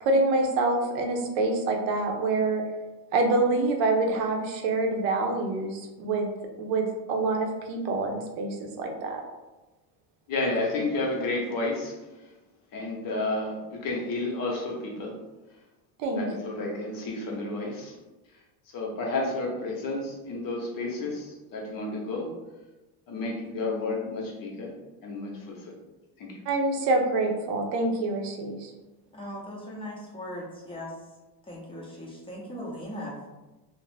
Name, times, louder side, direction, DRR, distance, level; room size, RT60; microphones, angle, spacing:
voice 1, 0.0-2.6 3.1-6.3 6.6-9.2 16.0-16.2 26.5-28.7, right 2 dB, 90° right, 3 dB, 0.7 m, -26 dB
voice 2, 10.3-12.0 12.7-15.2 16.1-18.0 18.7-22.3 23.1-24.7 25.0-25.8 26.2-26.4, left 2 dB, 45° left, -1 dB, 0.8 m, -31 dB
voice 3, 29.1-30.9 31.5-33.3, equal, 10° left, -4 dB, 0.7 m, -39 dB
2.6 x 2.0 x 3.1 m, 1.1 s
supercardioid pair, 115°, 47 cm